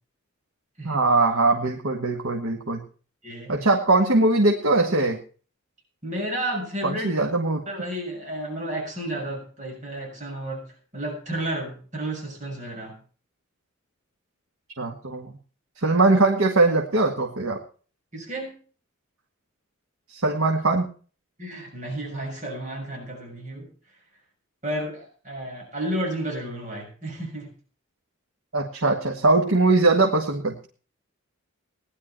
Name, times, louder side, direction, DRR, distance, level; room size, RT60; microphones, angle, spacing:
voice 1, 0.8-2.8 3.5-5.2 6.8-7.6 14.8-15.4 15.8-17.6 20.1-20.9 28.5-30.7, right 2 dB, 85° right, 2 dB, 2.0 m, -21 dB
voice 2, 3.2-3.7 6.0-7.1 7.7-10.6 10.9-12.9 18.1-18.6 21.4-23.7 24.6-27.5, right 1 dB, 35° right, 0 dB, 6.8 m, -32 dB
18.5 x 11.0 x 4.5 m, 0.40 s
head